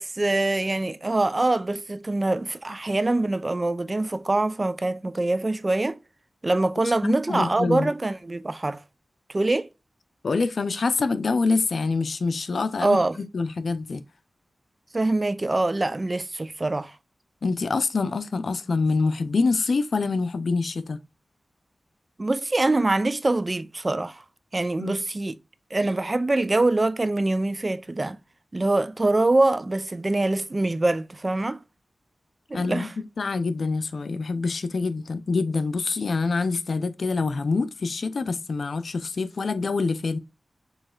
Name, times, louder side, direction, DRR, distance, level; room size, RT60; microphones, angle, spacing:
voice 1, 0.0-6.0 6.4-8.8 9.3-9.7 12.8-13.2 14.9-17.0 22.2-24.2 24.5-25.3 25.7-28.2 28.5-31.6 32.5-32.9, right 2 dB, 35° right, 0.5 m, -24 dB
voice 2, 7.0-7.9 10.2-14.0 17.4-21.0 24.8-24.9 32.5-32.9 33.2-40.2, left 4 dB, 75° left, 0.5 m, -26 dB
7.1 x 3.1 x 2.4 m
cardioid pair, 50°, 0 cm